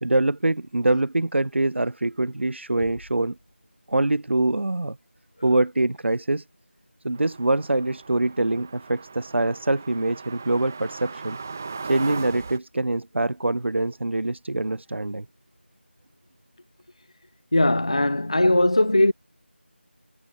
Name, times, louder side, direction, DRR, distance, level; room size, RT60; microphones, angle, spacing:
voice 1, 0.0-3.4 3.9-5.0 5.4-6.4 7.0-11.4 11.8-15.3, right 2 dB, 80° right, 0.6 m, -24 dB
sound 1, 2.8-4.4, left 1 dB, 90° left, 3.3 m, -49 dB
sound 2, 7.1-12.6, right 4 dB, 10° right, 0.9 m, -38 dB
voice 2, 17.5-19.1, left 1 dB, 30° left, 0.4 m, -19 dB
figure-of-eight pair, 175°, 6 cm